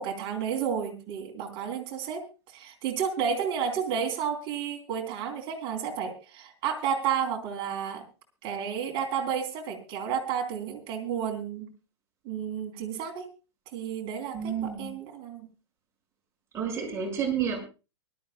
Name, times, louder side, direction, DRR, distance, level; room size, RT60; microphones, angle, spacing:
voice 1, 0.0-2.2 2.5-8.0 8.4-11.7 12.3-13.3 13.7-15.5, right 7 dB, 35° right, 2 dB, 3.4 m, -31 dB
voice 2, 14.3-15.0 16.5-17.6, right 7 dB, 20° right, -1 dB, 5.5 m, -30 dB
24.0 x 12.5 x 2.2 m, 0.31 s
figure-of-eight pair, 105°, 15 cm